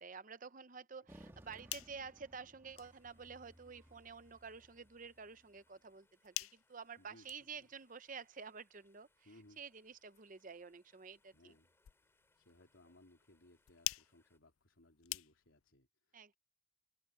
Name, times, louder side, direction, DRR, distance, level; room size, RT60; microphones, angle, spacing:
voice 1, 0.0-11.5 16.1-16.3, right 5 dB, 40° right, 0.7 m, -51 dB
sound 1, 1.1-5.6, right 1 dB, 10° right, 1.6 m, -62 dB
sound 2, 1.5-15.7, left 18 dB, 90° left, 0.4 m, -51 dB
sound 3, 2.7-14.4, left 2 dB, 10° left, 4.5 m, -78 dB
voice 2, 7.0-7.3 7.5-7.7 9.2-9.6 11.3-11.7 12.3-16.4, left 1 dB, 70° left, 3.7 m, -65 dB
open air
head